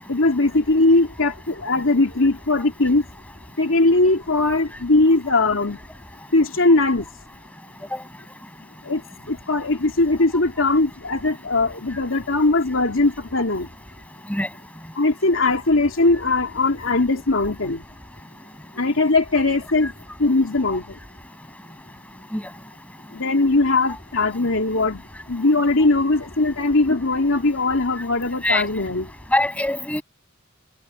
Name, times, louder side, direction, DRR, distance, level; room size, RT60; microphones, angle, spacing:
voice 1, 0.1-3.0 3.6-5.8 6.3-7.1 8.8-9.0 9.3-13.7 15.0-17.8 18.8-19.9 20.2-20.8 23.1-25.0 25.3-29.1, left 2 dB, 85° left, 2.6 m, -20 dB
voice 2, 29.3-30.0, left 1 dB, 5° left, 7.4 m, -23 dB
head